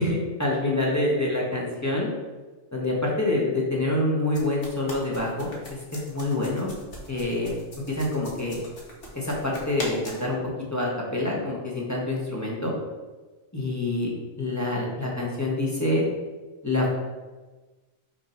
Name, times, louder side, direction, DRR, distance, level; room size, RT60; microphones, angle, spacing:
voice 1, 0.0-2.1 2.7-5.5 5.9-6.7 7.1-7.5 7.9-8.6 9.1-10.4 10.7-12.7 13.5-14.1 14.4-16.0 16.6-16.9, left 2 dB, 15° left, -4 dB, 1.1 m, -26 dB
sound 1, 4.3-10.3, left 1 dB, 45° left, 1.4 m, -41 dB
5.8 x 3.1 x 5.6 m, 1.2 s
omnidirectional pair, 1.4 m